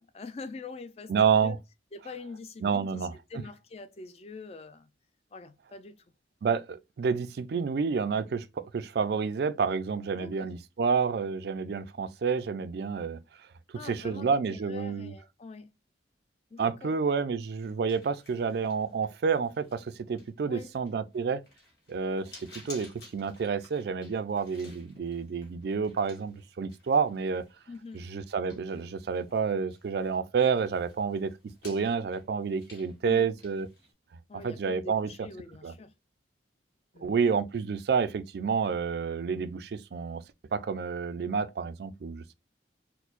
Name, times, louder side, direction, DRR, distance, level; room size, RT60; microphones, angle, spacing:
voice 1, 0.0-1.6 1.9-4.9 5.3-6.0 10.2-10.5 13.7-15.7 16.5-17.0 20.5-20.7 27.7-28.1 33.0-33.3 34.3-35.9 36.9-37.2, left 4 dB, 35° left, 0.3 m, -44 dB
voice 2, 1.1-1.6 2.6-3.1 6.4-13.2 13.8-15.1 16.6-21.4 21.9-27.4 28.1-31.3 31.6-33.7 34.4-35.1 35.6-35.7 37.0-40.2 40.5-42.3, right 5 dB, 55° right, 0.3 m, -29 dB
sound 1, 17.6-30.2 30.4-33.9, left 2 dB, 60° left, 1.8 m, -54 dB
4.3 x 2.1 x 2.4 m
head